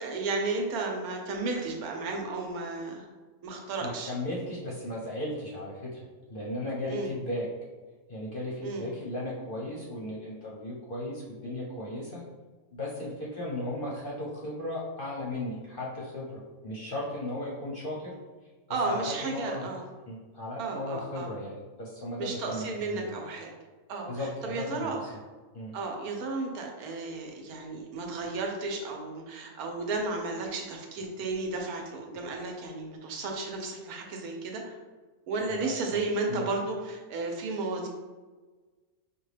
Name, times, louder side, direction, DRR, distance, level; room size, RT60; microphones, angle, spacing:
voice 1, 0.0-3.0 3.4-4.1 6.9-7.1 8.6-8.9 18.7-19.8 20.6-21.3 22.2-23.5 23.9-25.2 25.7-34.8 35.3-37.9, right 3 dB, 85° right, 1 dB, 1.2 m, -33 dB
voice 2, 3.8-6.0 6.3-7.5 8.1-12.2 12.7-18.1 18.8-19.7 20.1-23.1 24.1-25.1 25.5-25.7 35.5-35.7 36.3-36.5, left 1 dB, 50° left, -4 dB, 0.7 m, -36 dB
5.2 x 2.2 x 3.2 m, 1.3 s
omnidirectional pair, 1.5 m